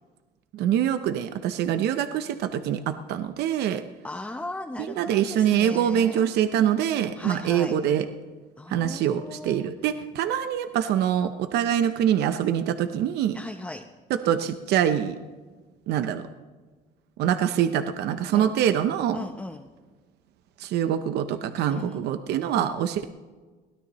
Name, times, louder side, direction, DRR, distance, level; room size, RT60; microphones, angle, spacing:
voice 1, 0.5-3.8 5.0-8.1 8.7-13.4 14.1-15.2 15.9-16.2 17.2-19.2 20.6-23.0, right 10 dB, 75° right, 9 dB, 0.8 m, -24 dB
voice 2, 4.0-6.3 7.2-7.7 8.6-9.7 13.3-13.9 18.3-18.5 19.1-19.7 21.7-22.1 22.5-22.8, left 2 dB, 10° left, 3 dB, 0.8 m, -37 dB
22.5 x 17.0 x 3.1 m, 1.3 s
cardioid pair, 110°, 17 cm